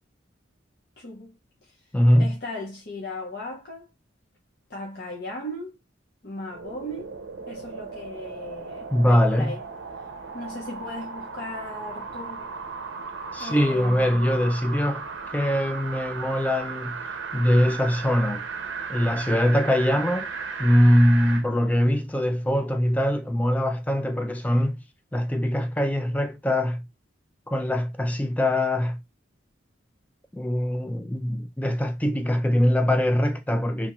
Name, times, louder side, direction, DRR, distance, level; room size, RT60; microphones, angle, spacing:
voice 1, 1.0-1.3 2.2-3.9 4.7-5.7 6.2-7.1 7.5-9.6 10.3-12.5 13.4-14.5, left 1 dB, 55° left, 0.8 m, -37 dB
voice 2, 1.9-2.3 8.9-9.5 13.3-15.1 15.3-17.0 17.3-18.5 18.9-20.3 20.6-24.8 25.1-26.9 27.5-29.0 30.3-33.9, equal, 10° left, 0.3 m, -22 dB
sound 1, 6.5-21.5 21.9-22.0, right 5 dB, 75° right, 0.6 m, -36 dB
2.9 x 2.3 x 3.0 m
head